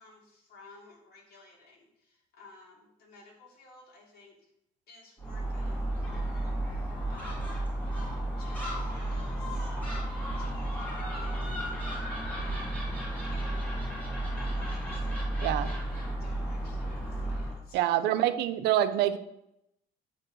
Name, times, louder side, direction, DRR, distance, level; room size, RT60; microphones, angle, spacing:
voice 1, 0.0-4.4 4.9-7.6 8.2-9.7 10.1-11.8 12.3-12.9 13.3-13.8 14.4-15.1 15.5-15.9 16.2-18.0, left 3 dB, 65° left, -2 dB, 3.0 m, -54 dB
Gull seagull, 5.2-17.6, right 1 dB, 10° left, 2.9 m, -33 dB
voice 2, 15.4-15.7 17.7-19.2, right 12 dB, 85° right, 11 dB, 0.7 m, -26 dB
8.3 x 5.0 x 6.2 m, 0.82 s
cardioid pair, 110°, 17 cm